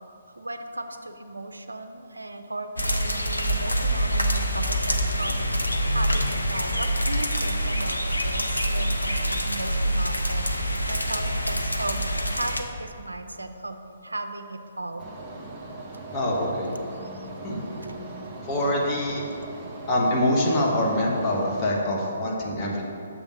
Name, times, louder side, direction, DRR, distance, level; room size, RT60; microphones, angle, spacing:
voice 1, 0.4-5.5 5.9-10.5 10.9-15.1 16.9-17.3, right 2 dB, 85° right, 8 dB, 0.4 m, -36 dB
sound 1, 2.8-12.6, equal, 90° left, 0.6 m, -25 dB
sound 2, 15.0-21.7, right 2 dB, 15° right, 1.0 m, -39 dB
voice 2, 16.1-16.7 17.4-17.6 18.5-19.2 19.9-22.9, left 1 dB, 25° left, -3 dB, 1.2 m, -24 dB
6.9 x 3.6 x 5.9 m, 2.5 s
figure-of-eight pair, 135°, 0 cm